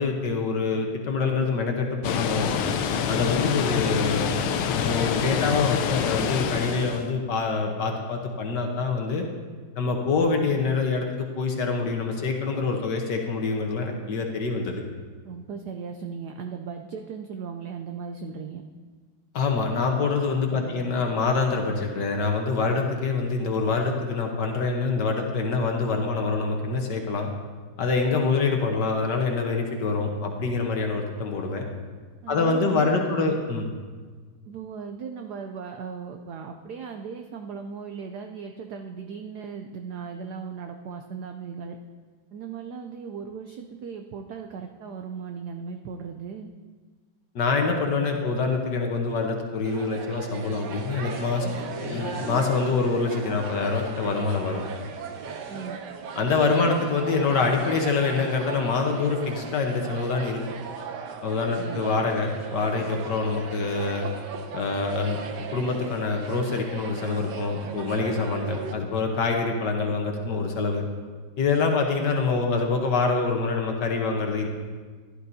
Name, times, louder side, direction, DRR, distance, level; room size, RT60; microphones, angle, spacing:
voice 1, 0.0-2.5 3.1-4.3 4.7-9.2 9.8-14.8 19.3-27.3 27.8-31.7 32.3-33.7 47.3-51.5 51.9-54.6 56.2-60.4 61.2-64.1 64.5-65.2 65.5-70.8 71.4-74.5, left 4 dB, 60° left, 2 dB, 1.5 m, -25 dB
Water, 2.0-7.1, left 7 dB, 85° left, 1.6 m, -26 dB
voice 2, 15.2-18.6 20.5-20.8 32.2-33.4 34.5-41.8 42.3-46.5 55.5-55.8 61.6-61.8, right 6 dB, 90° right, 5 dB, 0.8 m, -37 dB
sound 1, 49.7-68.7, right 6 dB, 65° right, 1.1 m, -38 dB
sound 2, 50.4-55.7, equal, 40° right, 2.9 m, -40 dB
14.5 x 11.0 x 2.7 m, 1.5 s
omnidirectional pair, 2.4 m